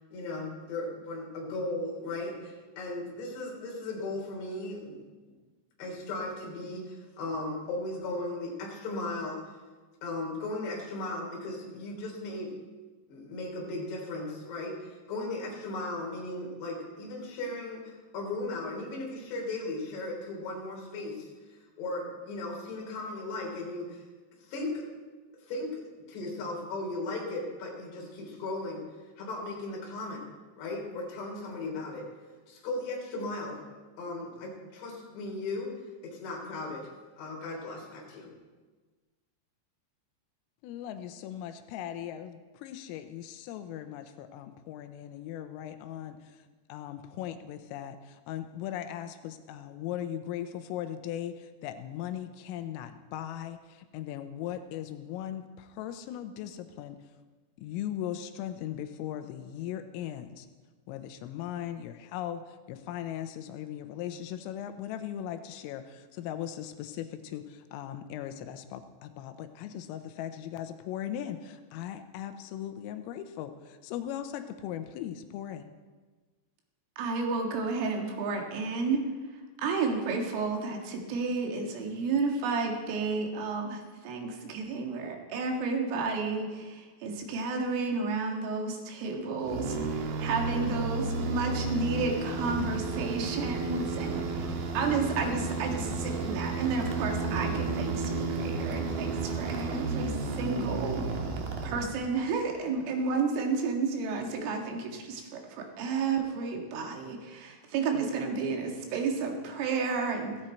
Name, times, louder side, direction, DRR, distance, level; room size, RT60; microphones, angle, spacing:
voice 1, 0.1-5.0 5.8-9.4 10.0-12.5 13.1-21.3 21.8-24.0 24.4-24.8 25.5-25.8 26.1-28.9 29.2-30.2 30.6-32.1 32.5-33.6 34.0-36.9 37.2-38.3, left 2 dB, 60° left, -2 dB, 5.4 m, -36 dB
voice 2, 40.6-46.4 46.7-57.0 57.6-60.5 60.9-75.7, left 11 dB, 85° left, 9 dB, 3.5 m, -38 dB
voice 3, 77.0-79.0 79.6-101.2 101.6-110.4, right 4 dB, 80° right, 2 dB, 4.3 m, -31 dB
sound 1, 89.4-102.3, right 3 dB, 65° right, 2.4 m, -32 dB
16.0 x 16.0 x 4.4 m, 1.3 s
omnidirectional pair, 5.8 m